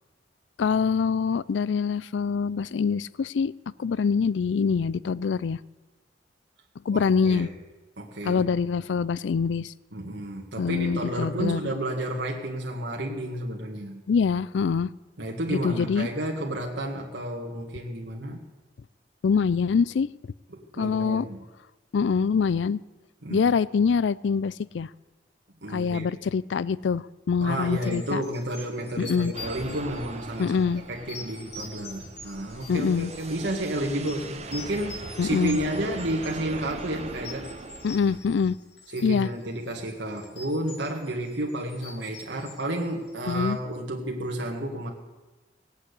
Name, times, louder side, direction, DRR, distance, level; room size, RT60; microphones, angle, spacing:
voice 1, 0.6-3.5 3.8-5.6 6.9-7.5 8.2-9.7 10.6-11.7 14.1-14.9 15.5-16.1 19.2-20.1 20.8-21.2 21.9-22.8 23.3-24.9 25.7-28.2 29.0-29.3 30.4-30.8 32.7-33.1 35.2-35.6 37.8-38.6 39.0-39.3 43.3-43.6, left 5 dB, 85° left, 20 dB, 0.4 m, -24 dB
voice 2, 6.9-7.5 8.0-8.5 9.9-14.0 15.2-18.4 20.5-21.4 23.2-23.5 25.6-26.1 27.4-37.5 38.9-44.9, right 1 dB, 70° right, 0 dB, 1.8 m, -31 dB
sound 1, 27.7-43.5, left 3 dB, 65° left, 3.1 m, -46 dB
sound 2, 29.3-38.2, right 3 dB, 40° right, 1.2 m, -40 dB
18.5 x 8.6 x 8.3 m, 1.2 s
head